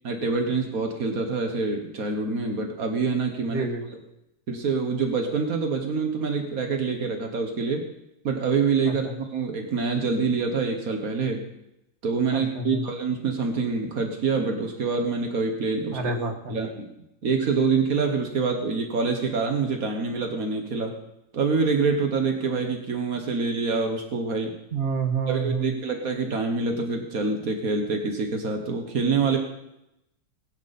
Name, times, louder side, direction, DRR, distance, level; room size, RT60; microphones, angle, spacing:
voice 1, 0.0-3.7 4.5-7.8 8.2-11.4 12.0-16.0 16.5-16.9 17.2-20.9 21.3-24.6 25.3-29.4, right 4 dB, 85° right, 3 dB, 0.7 m, -26 dB
voice 2, 3.5-3.8 8.8-9.1 12.3-12.8 15.9-16.6 24.7-25.7, right 4 dB, 35° right, 4 dB, 1.2 m, -28 dB
21.5 x 12.0 x 4.3 m, 0.86 s
omnidirectional pair, 3.8 m